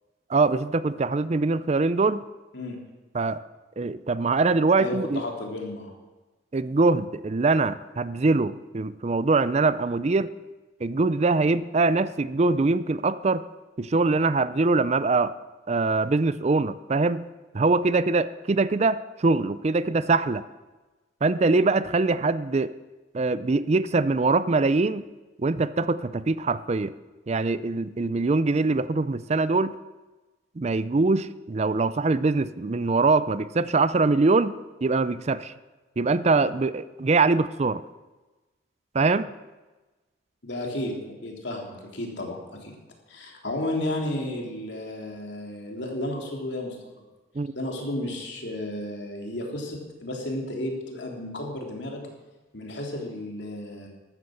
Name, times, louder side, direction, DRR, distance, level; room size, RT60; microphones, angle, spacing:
voice 1, 0.3-2.2 3.1-3.4 3.8-5.2 6.5-10.3 10.8-13.4 13.8-15.3 15.7-17.3 17.5-20.4 21.2-22.7 23.1-25.1 25.4-26.9 27.3-29.8 30.6-35.5 36.0-37.8 38.9-39.3 47.4-47.5, right 3 dB, 35° right, 15 dB, 0.4 m, -23 dB
voice 2, 4.8-5.9 40.4-42.7 43.1-46.8 47.5-52.0 52.5-53.9, left 1 dB, 65° left, 1 dB, 3.3 m, -33 dB
14.5 x 12.0 x 6.6 m, 1.2 s
head